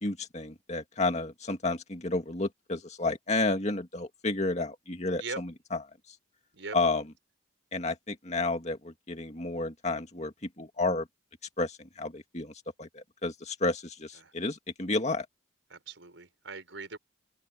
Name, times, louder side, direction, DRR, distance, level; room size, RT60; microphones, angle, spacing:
voice 1, 0.0-5.5 6.7-7.0 7.7-11.1 11.6-12.5 12.8-15.3, left 2 dB, 35° left, 2.3 m, -31 dB
voice 2, 15.7-17.0, right 4 dB, 75° right, 5.0 m, -40 dB
open air
head